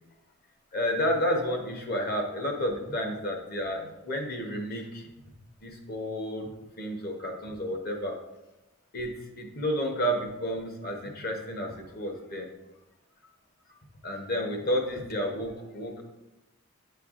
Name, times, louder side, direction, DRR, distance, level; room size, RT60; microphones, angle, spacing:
voice 1, 0.7-5.0 5.6-6.5 6.8-8.2 8.9-12.5 14.0-16.0, equal, 45° left, 2 dB, 0.9 m, -31 dB
8.7 x 4.5 x 2.5 m, 0.97 s
head